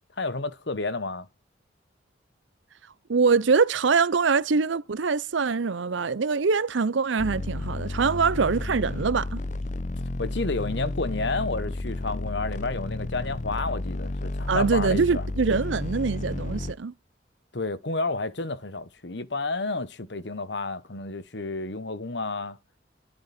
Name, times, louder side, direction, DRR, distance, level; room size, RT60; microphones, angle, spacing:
voice 1, 0.2-1.3 10.2-15.2 17.5-22.6, left 3 dB, 60° left, 1.2 m, -31 dB
voice 2, 3.1-9.4 14.5-16.9, right 5 dB, 70° right, 0.6 m, -24 dB
sound 1, 7.2-16.7, left 2 dB, 40° left, 0.7 m, -32 dB
22.5 x 7.7 x 4.3 m
head